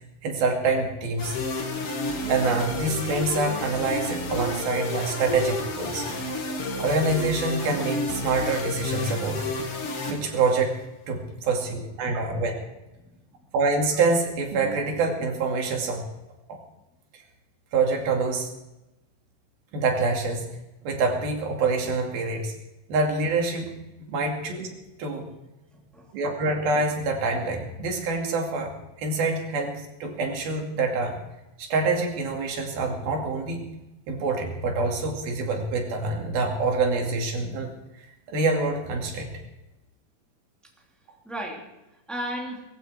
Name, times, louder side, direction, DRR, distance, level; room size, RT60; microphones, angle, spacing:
voice 1, 0.2-1.4 2.2-6.1 6.8-9.4 10.1-10.8 11.1-12.6 13.5-16.0 16.5-16.6 17.7-18.5 19.7-20.5 20.8-22.5 22.9-24.7 25.0-25.3 26.1-31.2 31.6-33.6 34.1-37.7 38.3-39.3, right 3 dB, 85° right, 2 dB, 4.3 m, -26 dB
sound 1, 1.2-10.9, left 2 dB, 45° left, 2.6 m, -31 dB
voice 2, 12.0-12.4 13.0-13.1 25.2-25.3 25.7-26.1 41.2-41.6 42.1-42.6, right 1 dB, ahead, -1 dB, 2.8 m, -36 dB
19.0 x 15.5 x 4.7 m, 0.97 s
omnidirectional pair, 4.2 m